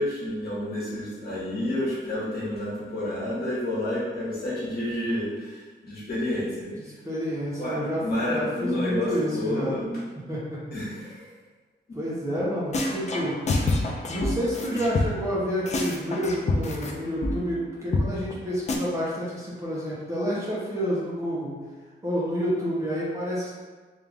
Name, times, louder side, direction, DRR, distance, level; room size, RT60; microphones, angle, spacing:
voice 1, 0.0-6.8 7.6-10.0 10.7-11.3 11.9-12.0, left 1 dB, 55° left, -8 dB, 1.3 m, -29 dB
voice 2, 7.0-8.0 8.3-9.8 10.3-10.6 11.9-13.4 14.1-21.5 22.0-23.5, equal, 15° right, -8 dB, 0.7 m, -29 dB
sound 1, 12.4-12.5 12.7-15.3 15.7-16.9 17.2-17.3 17.6-17.7 17.9-18.0 18.3-18.4 18.7-18.8, left 2 dB, 35° left, 0.4 m, -26 dB
3.4 x 2.5 x 3.4 m, 1.3 s
wide cardioid pair, 175°, 19 cm